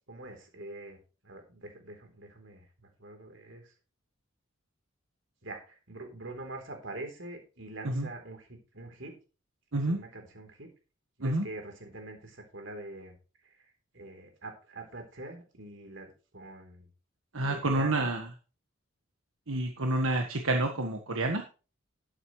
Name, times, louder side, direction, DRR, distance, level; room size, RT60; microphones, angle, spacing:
voice 1, 0.1-1.0 1.2-3.7 5.4-9.2 9.7-10.7 11.2-13.2 13.4-13.5 13.9-16.9 17.4-18.1 20.0-20.2, right 2 dB, 60° right, 4 dB, 3.7 m, -44 dB
voice 2, 17.3-18.3 19.5-21.4, right 2 dB, 75° right, 3 dB, 1.5 m, -28 dB
12.5 x 11.0 x 3.2 m, 0.34 s
head